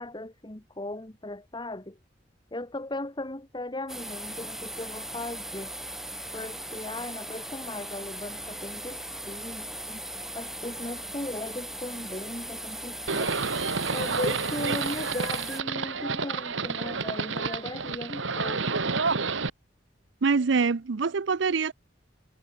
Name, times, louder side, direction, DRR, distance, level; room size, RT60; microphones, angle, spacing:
voice 1, 0.0-2.0 2.5-5.7 6.3-10.0 10.3-13.3 13.9-18.9, left 1 dB, 25° left, 1.6 m, -37 dB
sound 1, 3.9-15.6, right 1 dB, ahead, 1.4 m, -38 dB
Livestock farm animals working animals, 13.1-19.5, right 4 dB, 85° right, 1.9 m, -29 dB
voice 2, 20.2-21.7, right 4 dB, 70° right, 0.6 m, -24 dB
head